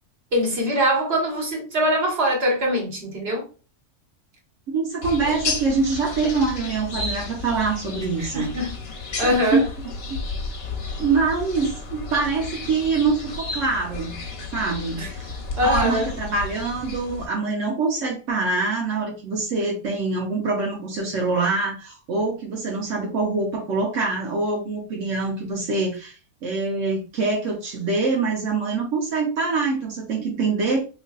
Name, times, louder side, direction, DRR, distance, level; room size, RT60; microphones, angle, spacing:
voice 1, 0.3-3.5 8.2-8.8 9.2-9.7 15.0-15.1 15.6-16.1, equal, 55° right, 1.6 m, -23 dB
voice 2, 4.7-8.5 9.2-10.2 11.0-14.2 14.5-15.3 15.6-26.2 26.4-30.8, right 4 dB, 80° right, 1.2 m, -24 dB
sound 1, 5.0-17.3, left 3 dB, 55° left, 1.0 m, -32 dB
3.9 x 3.0 x 2.3 m
omnidirectional pair, 1.3 m